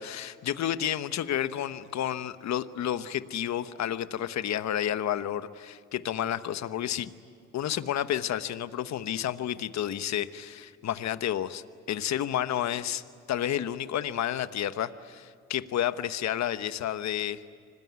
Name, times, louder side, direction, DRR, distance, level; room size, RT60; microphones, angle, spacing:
voice 1, 0.0-7.1 7.5-13.0 13.3-17.4, left 11 dB, 65° left, 12 dB, 1.1 m, -31 dB
26.0 x 20.5 x 9.4 m, 2.3 s
cardioid pair, 90°, 30 cm